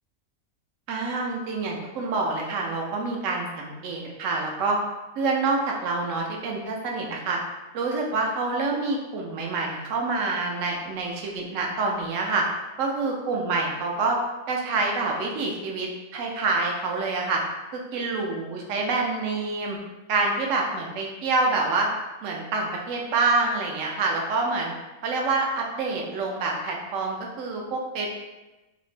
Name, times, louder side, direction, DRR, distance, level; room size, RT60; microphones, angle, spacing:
voice 1, 0.9-4.8 5.2-7.4 7.7-12.4 12.8-14.2 14.5-17.4 17.7-19.8 20.1-21.9 22.2-24.7 25.0-28.1, right 3 dB, 70° right, 0 dB, 0.9 m, -27 dB
2.8 x 2.1 x 3.1 m, 1.1 s
omnidirectional pair, 1.4 m